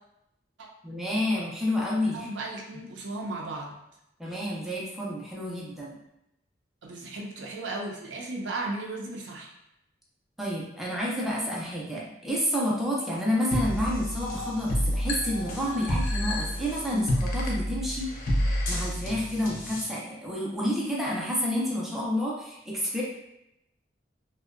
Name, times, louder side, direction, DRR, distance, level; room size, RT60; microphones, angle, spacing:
voice 1, 0.8-2.3 4.2-6.0 10.4-18.1 18.7-23.0, left 1 dB, ahead, -5 dB, 0.4 m, -29 dB
voice 2, 2.1-3.8 6.8-9.5 16.9-17.1, right 2 dB, 75° right, -1 dB, 0.5 m, -35 dB
sound 1, 13.5-19.9, left 1 dB, 50° left, 0.5 m, -29 dB
2.6 x 2.1 x 2.4 m, 0.84 s
head